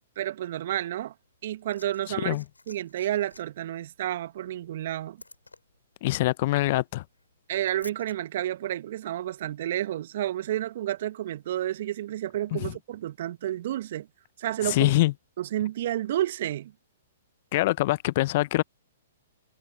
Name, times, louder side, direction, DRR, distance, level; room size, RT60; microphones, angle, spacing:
voice 1, 0.2-1.1 1.4-2.4 2.7-5.2 7.5-14.1 14.4-14.9 15.4-16.7, right 13 dB, 50° right, 1.4 m, -30 dB
Liquid, 1.2-8.2 9.2-9.3, left 3 dB, 85° left, 4.1 m, -53 dB
voice 2, 6.0-7.0 12.5-12.7 14.6-15.1 17.5-18.6, left 18 dB, 45° left, 0.8 m, -24 dB
figure-of-eight pair, 115°, 0 cm